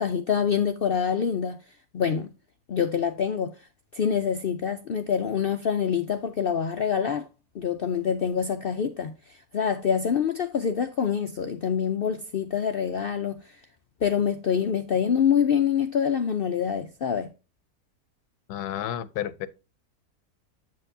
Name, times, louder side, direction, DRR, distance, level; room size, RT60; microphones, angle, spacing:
voice 1, 0.0-1.6 1.9-2.3 2.7-3.5 3.9-7.3 7.5-13.6 14.0-17.3, left 7 dB, 70° left, 0.5 m, -26 dB
voice 2, 18.5-19.5, left 11 dB, 90° left, 1.2 m, -31 dB
8.0 x 7.4 x 2.6 m
omnidirectional pair, 1.6 m